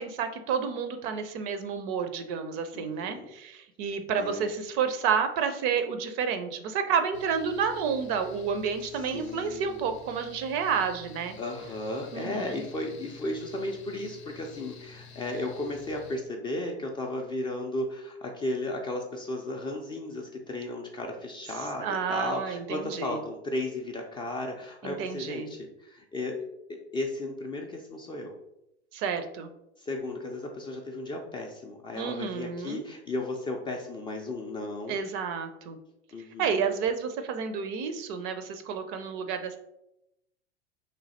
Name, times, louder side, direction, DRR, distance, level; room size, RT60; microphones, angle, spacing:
voice 1, 0.0-11.4 12.1-12.7 21.8-23.2 24.8-25.5 28.9-29.5 32.0-32.8 34.9-35.8 36.4-39.6, right 6 dB, 45° right, 8 dB, 0.5 m, -30 dB
voice 2, 2.7-3.3 4.2-4.5 9.1-9.8 11.4-26.4 26.7-28.4 29.8-35.0 36.1-36.5, left 2 dB, 15° left, 1 dB, 0.3 m, -35 dB
Mechanical fan, 7.1-16.2, left 5 dB, 80° left, 0.6 m, -50 dB
3.2 x 2.2 x 4.0 m, 0.83 s
hypercardioid pair, 90°, 32 cm